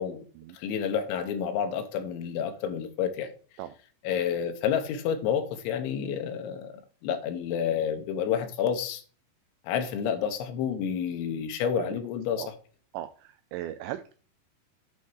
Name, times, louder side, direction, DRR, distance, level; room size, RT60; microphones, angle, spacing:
voice 1, 0.5-3.3 4.0-9.0 9.6-12.4, left 8 dB, 85° left, 3.4 m, -29 dB
voice 2, 12.9-14.2, right 13 dB, 85° right, 2.8 m, -38 dB
8.5 x 4.2 x 6.4 m
omnidirectional pair, 5.3 m